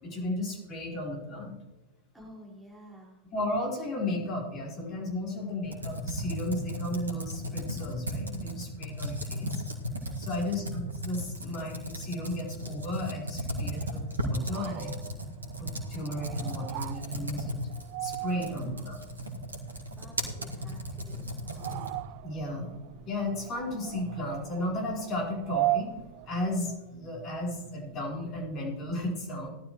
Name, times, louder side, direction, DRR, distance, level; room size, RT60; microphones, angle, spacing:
voice 1, 0.0-1.5 3.3-9.6 10.2-14.9 15.6-17.6 18.0-19.0 22.2-22.7 23.0-25.9 26.3-29.5, left 1 dB, 35° left, -3 dB, 4.7 m, -34 dB
voice 2, 2.1-3.2 10.0-10.6 18.3-19.2 19.9-21.3, equal, 5° right, -4 dB, 5.1 m, -51 dB
Computer keyboard, 5.6-22.1, equal, 75° right, 1.9 m, -36 dB
sound 1, 14.3-26.9, right 16 dB, 45° right, 0.4 m, -38 dB
18.0 x 12.0 x 3.1 m, 1.1 s
figure-of-eight pair, 90°, 0 cm